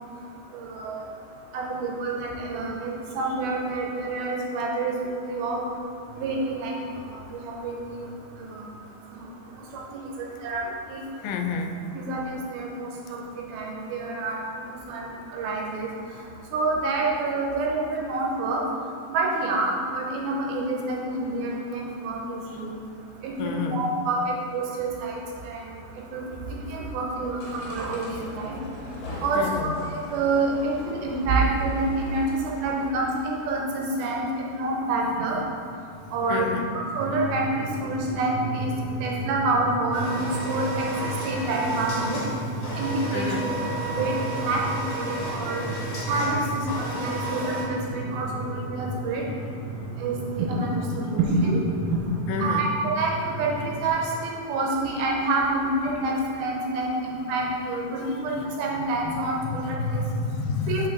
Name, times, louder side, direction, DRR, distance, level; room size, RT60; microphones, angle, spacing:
voice 1, 0.5-1.0 1.5-5.6 6.1-7.1 7.3-8.0 8.5-8.7 9.1-9.3 9.7-9.8 10.2-11.0 11.9-13.2 13.5-14.4 14.7-15.9 16.5-18.6 19.1-22.8 23.2-25.2 25.4-25.6 26.1-26.2 26.7-28.6 29.2-34.2 34.5-35.4 36.1-38.7 39.0-40.9 41.2-42.2 42.8-43.3 43.8-45.6 46.1-49.2 50.0-51.6 52.4-60.0 60.7-60.9, right 2 dB, 80° right, -1 dB, 2.4 m, -27 dB
voice 2, 11.2-11.8 23.4-23.9 29.3-29.7 36.3-36.7 42.7-42.8 43.1-43.5 52.3-52.7 58.3-58.4 59.1-60.9, left 4 dB, 85° left, 5 dB, 2.6 m, -29 dB
sound 1, 27.4-33.4, left 1 dB, 70° left, 2.6 m, -40 dB
sound 2, 37.0-53.9, right 2 dB, 60° right, 2.6 m, -34 dB
sound 3, 39.9-47.6, right 2 dB, 55° left, 2.5 m, -33 dB
5.8 x 5.6 x 3.7 m, 2.5 s
omnidirectional pair, 4.6 m